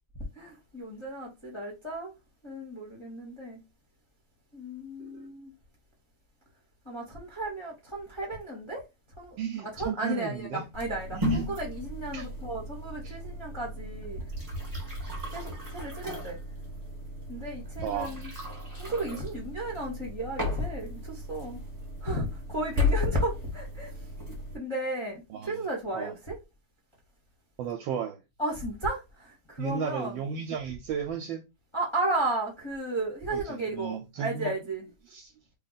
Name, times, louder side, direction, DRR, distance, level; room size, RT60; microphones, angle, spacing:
voice 1, 0.3-2.1 2.4-3.6 4.5-5.5 6.8-8.8 9.2-14.2 15.3-16.4 17.3-18.3 18.7-21.6 22.0-24.1 24.5-26.4 28.4-30.2 31.7-34.9, right 1 dB, 25° left, 0.7 m, -34 dB
voice 2, 9.4-10.6 11.1-11.5 12.1-12.3 13.0-13.1 17.8-18.3 25.3-25.6 26.0-26.1 27.6-28.2 29.6-31.5 33.3-34.5 35.1-35.3, right 7 dB, 75° right, 1.2 m, -34 dB
sound 1, 10.7-24.6, left 2 dB, 20° right, 1.3 m, -35 dB
3.3 x 2.3 x 3.9 m
omnidirectional pair, 2.2 m